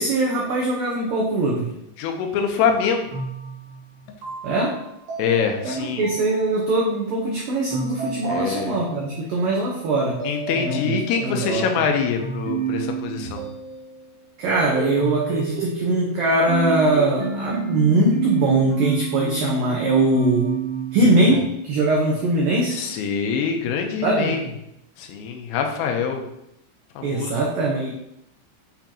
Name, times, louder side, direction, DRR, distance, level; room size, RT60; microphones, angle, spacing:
voice 1, 0.0-1.7 4.4-4.8 5.6-10.2 10.5-11.6 14.4-20.6 20.9-22.8 24.0-24.4 27.0-27.9, right 2 dB, 85° right, -3 dB, 1.9 m, -21 dB
voice 2, 2.0-3.1 5.2-6.1 8.3-8.8 10.3-13.4 22.7-24.5 25.0-26.2 27.0-27.4, left 6 dB, 90° left, 4 dB, 3.6 m, -24 dB
sound 1, 3.1-7.0 7.7-9.2 10.2-11.4 12.2-14.1 14.4-21.4, right 6 dB, 60° right, 4.1 m, -30 dB
9.4 x 5.8 x 3.0 m, 0.79 s
omnidirectional pair, 5.7 m